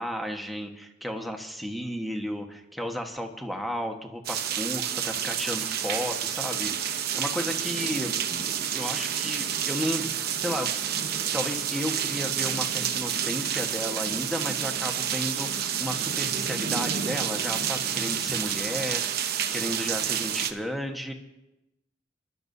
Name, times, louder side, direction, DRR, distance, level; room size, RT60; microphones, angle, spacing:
voice 1, 0.0-10.7 11.3-21.1, equal, ahead, 2 dB, 1.3 m, -33 dB
sound 1, 4.2-20.5, right 8 dB, 55° right, 0.9 m, -29 dB
27.5 x 12.0 x 2.7 m, 0.93 s
head